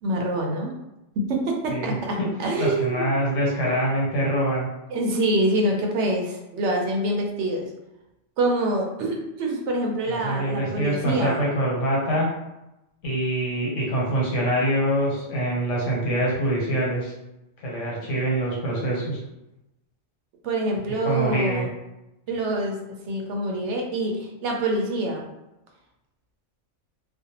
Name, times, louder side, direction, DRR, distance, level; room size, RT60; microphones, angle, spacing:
voice 1, 0.0-0.7 1.1-3.1 4.9-7.7 8.4-11.4 18.0-18.2 20.4-21.7 22.3-22.8 23.1-25.2, right 1 dB, 70° right, 1 dB, 0.8 m, -26 dB
voice 2, 1.7-2.3 2.6-4.7 10.1-12.3 13.0-17.1 17.6-19.2 21.0-21.7, right 1 dB, 80° left, -3 dB, 1.2 m, -24 dB
2.5 x 2.1 x 2.8 m, 0.93 s
omnidirectional pair, 1.3 m